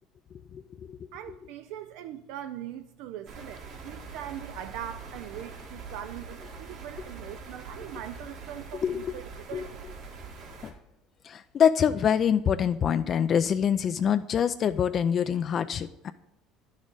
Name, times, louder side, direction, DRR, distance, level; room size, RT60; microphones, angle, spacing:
voice 1, 1.1-9.9, right 11 dB, 75° right, 0.4 m, -41 dB
sound 1, 3.3-10.7, right 4 dB, 60° right, 1.8 m, -43 dB
voice 2, 8.8-9.1 9.5-9.7 10.6-10.7 11.2-16.1, left 8 dB, 40° left, 0.3 m, -25 dB
10.5 x 6.3 x 3.7 m
supercardioid pair, 115°, 0 cm